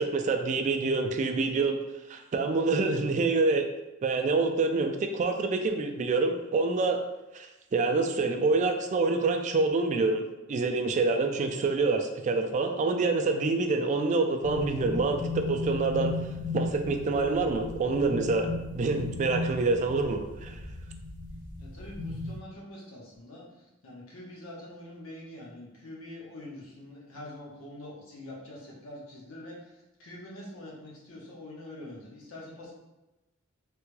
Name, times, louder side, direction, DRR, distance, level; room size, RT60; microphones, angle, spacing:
voice 1, 0.0-1.8 2.1-3.7 4.0-7.0 7.3-10.2 10.5-16.1 16.5-20.6, right 3 dB, 35° right, 5 dB, 0.3 m, -26 dB
sound 1, 14.4-22.4, left 3 dB, 45° left, 0.8 m, -36 dB
voice 2, 21.6-23.4 23.8-32.7, left 1 dB, 85° left, -4 dB, 1.0 m, -45 dB
3.4 x 2.2 x 3.1 m, 1.0 s
head